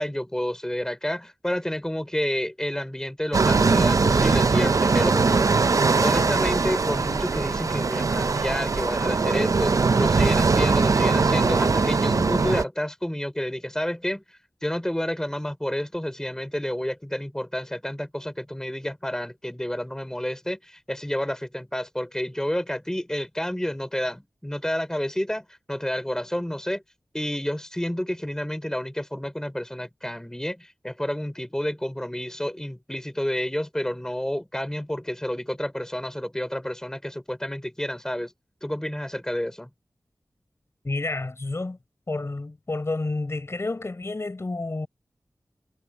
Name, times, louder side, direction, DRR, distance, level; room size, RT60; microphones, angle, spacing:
voice 1, 0.0-5.6 6.0-9.7 10.0-26.8 27.1-38.3 38.6-39.7, equal, 10° left, 5.0 m, -30 dB
sound 1, 3.3-12.6, right 4 dB, 60° right, 0.7 m, -21 dB
voice 2, 40.8-41.8 42.1-44.9, left 2 dB, 45° left, 6.0 m, -30 dB
wide cardioid pair, 65°, 6 cm